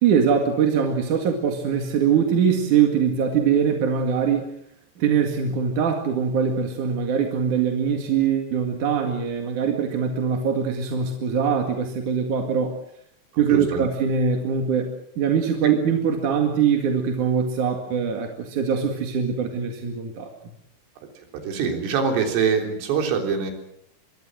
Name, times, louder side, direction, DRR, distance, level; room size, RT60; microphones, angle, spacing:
voice 1, 0.0-4.5 5.0-12.8 13.4-20.3, right 7 dB, 50° right, 3 dB, 2.6 m, -22 dB
voice 2, 13.3-13.8 21.2-23.5, right 6 dB, 75° right, 4 dB, 6.0 m, -24 dB
24.0 x 24.0 x 6.4 m, 0.70 s
omnidirectional pair, 5.9 m